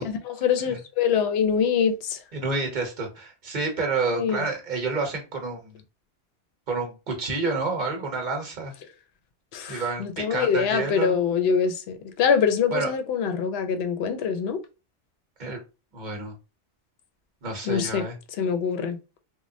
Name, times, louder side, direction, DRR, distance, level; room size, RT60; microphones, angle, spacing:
voice 1, 0.0-2.2 4.1-4.4 9.5-14.6 17.7-18.0 18.4-19.0, left 7 dB, 65° left, 0.7 m, -24 dB
voice 2, 2.3-5.8 6.7-8.7 9.7-11.1 12.7-12.9 15.4-15.6 15.9-16.4 17.4-18.2, right 3 dB, 45° right, 0.9 m, -29 dB
3.0 x 2.2 x 2.6 m
omnidirectional pair, 1.2 m